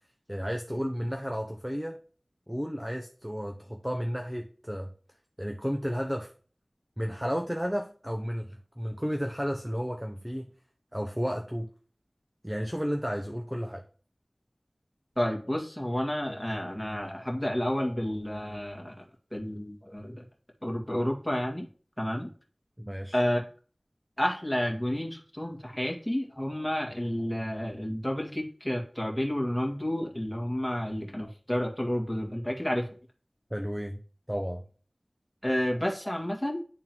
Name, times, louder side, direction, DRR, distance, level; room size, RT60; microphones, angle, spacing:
voice 1, 0.3-2.0 2.5-4.9 5.4-6.3 7.0-10.5 10.9-11.7 12.4-13.8 22.8-23.2 33.5-34.0 34.3-34.6, equal, 10° right, 3 dB, 0.6 m, -32 dB
voice 2, 15.2-19.0 19.3-20.2 20.6-21.7 22.0-22.3 23.1-23.4 24.2-32.9 35.4-36.6, left 1 dB, 10° left, -1 dB, 1.9 m, -30 dB
10.5 x 3.7 x 3.0 m, 0.41 s
wide cardioid pair, 45°, 0 cm